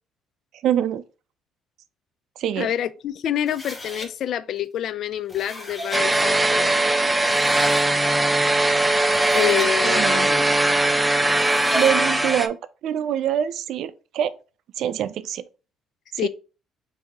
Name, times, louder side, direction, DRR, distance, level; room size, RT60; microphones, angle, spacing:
voice 1, 0.6-1.0 2.4-2.7 9.4-10.4 11.7-14.3 14.8-15.4 16.2-16.3, right 10 dB, 70° right, 0.4 m, -25 dB
voice 2, 2.6-6.7 9.3-10.4 16.2-16.3, left 11 dB, 65° left, 0.3 m, -27 dB
sound 1, 3.5-4.1 5.1-6.0 6.8-6.9 7.2-7.9 9.0-9.7 11.2-12.0, left 1 dB, 20° left, 1.2 m, -36 dB
sound 2, 5.9-12.5, right 1 dB, 5° right, 0.5 m, -20 dB
3.5 x 2.7 x 4.7 m
supercardioid pair, 85°, 0 cm